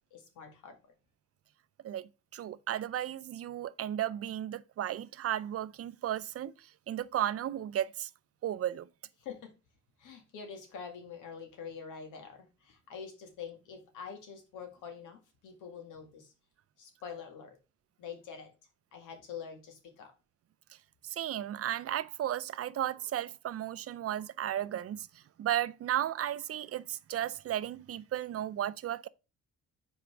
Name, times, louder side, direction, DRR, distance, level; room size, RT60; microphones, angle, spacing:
voice 1, 0.1-0.8 9.2-9.5 10.0-16.3 16.8-17.6 18.0-18.5 18.9-20.1, left 6 dB, 90° left, 1.9 m, -45 dB
voice 2, 1.8-8.1 8.4-8.9 21.0-29.1, right 11 dB, 50° right, 0.5 m, -34 dB
5.1 x 4.4 x 6.0 m
cardioid pair, 90°, 30 cm